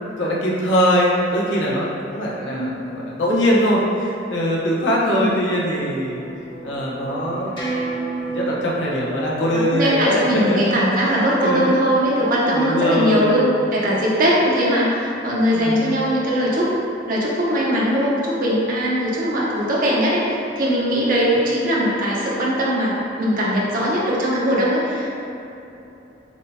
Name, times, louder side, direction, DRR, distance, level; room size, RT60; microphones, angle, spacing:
voice 1, 0.2-6.2 6.6-7.5 8.2-10.8 11.1-11.7 12.5-13.4 15.5-15.9, equal, 80° left, -4 dB, 0.8 m, -21 dB
voice 2, 2.4-2.8 5.1-5.4 9.5-16.7 17.1-20.2 20.6-25.1, equal, 50° right, -5 dB, 0.9 m, -20 dB
sound 1, 5.2-11.5, right 3 dB, 25° left, 0.9 m, -33 dB
7.2 x 2.8 x 2.2 m, 2.9 s
head